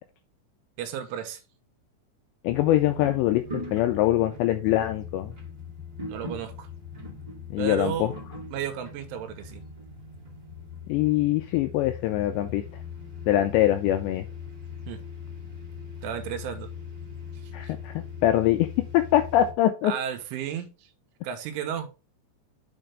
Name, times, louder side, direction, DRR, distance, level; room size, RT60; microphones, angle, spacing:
voice 1, 0.8-1.4 6.1-6.7 7.6-8.2 8.5-9.6 14.9-15.0 16.0-16.7 17.6-17.7 19.8-20.7 21.2-21.9, right 9 dB, 85° right, 6 dB, 3.5 m, -33 dB
voice 2, 2.4-5.3 7.5-8.1 10.9-12.6 13.3-14.3 17.5-18.7 18.9-19.9, left 13 dB, 85° left, 8 dB, 2.5 m, -23 dB
sound 1, 2.5-19.5, left 5 dB, 60° right, 0.4 m, -40 dB
7.9 x 5.0 x 3.5 m, 0.30 s
omnidirectional pair, 5.6 m